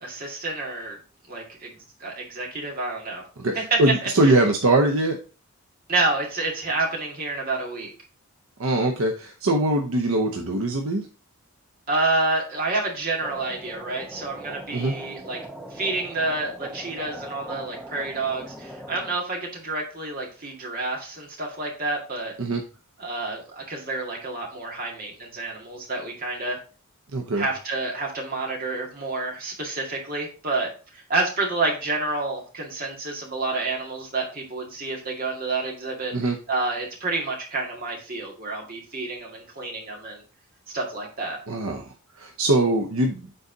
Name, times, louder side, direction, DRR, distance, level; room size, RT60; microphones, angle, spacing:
voice 1, 0.0-1.0 1.3-1.7 2.0-3.2 3.7-4.3 5.9-7.9 11.9-15.4 15.7-22.3 23.0-26.6 27.4-36.1 36.5-40.2 40.7-41.4, right 2 dB, 40° right, -1 dB, 2.1 m, -29 dB
voice 2, 3.4-5.2 8.6-11.1 14.7-14.9 22.4-22.6 27.1-27.5 36.1-36.4 41.5-41.9 42.2-43.3, right 2 dB, 70° right, 3 dB, 0.8 m, -22 dB
sound 1, 13.2-19.2, right 1 dB, 5° right, 0.7 m, -40 dB
7.8 x 4.1 x 3.9 m, 0.36 s
head